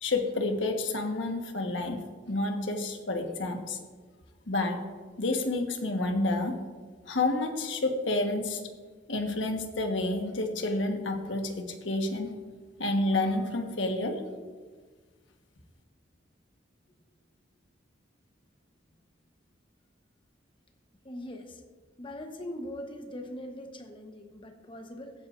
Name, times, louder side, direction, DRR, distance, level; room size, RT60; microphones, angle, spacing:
voice 1, 0.0-2.0 2.3-3.8 4.5-4.8 5.2-6.5 7.1-8.6 9.1-12.3 12.8-14.2, left 2 dB, 80° left, 4 dB, 1.3 m, -29 dB
voice 2, 21.0-21.6 22.0-25.1, left 1 dB, 25° left, 5 dB, 1.0 m, -41 dB
15.5 x 10.0 x 2.6 m, 1.5 s
head